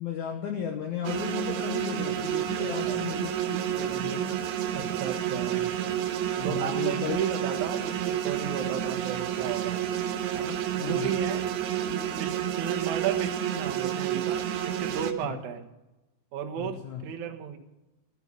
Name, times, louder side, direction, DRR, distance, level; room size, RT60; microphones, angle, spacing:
voice 1, 0.0-3.3 3.7-4.4 6.4-7.2 10.8-11.1 15.2-15.3 16.6-17.0, left 8 dB, 65° left, 3 dB, 1.9 m, -34 dB
sound 1, 1.0-15.1, right 10 dB, 80° right, 3.3 m, -30 dB
voice 2, 2.5-3.0 4.7-5.7 6.4-9.8 10.3-11.4 11.8-15.6 16.3-17.6, right 8 dB, 60° right, 5 dB, 2.2 m, -33 dB
14.5 x 8.1 x 9.6 m, 1.0 s
omnidirectional pair, 5.1 m